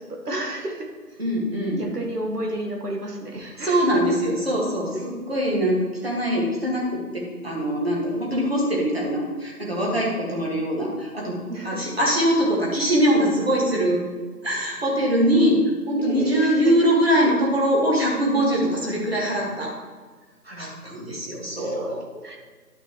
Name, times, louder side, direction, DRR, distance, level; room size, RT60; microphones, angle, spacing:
voice 1, 0.0-1.2 1.8-4.0 11.5-11.9 13.2-13.3 16.0-16.8 21.6-22.4, right 1 dB, 75° right, 1 dB, 1.9 m, -32 dB
voice 2, 1.2-1.8 3.6-11.4 11.6-14.0 14.4-19.7 20.4-22.0, equal, 40° right, -3 dB, 2.1 m, -22 dB
11.5 x 6.0 x 3.2 m, 1.4 s
figure-of-eight pair, 175°, 47 cm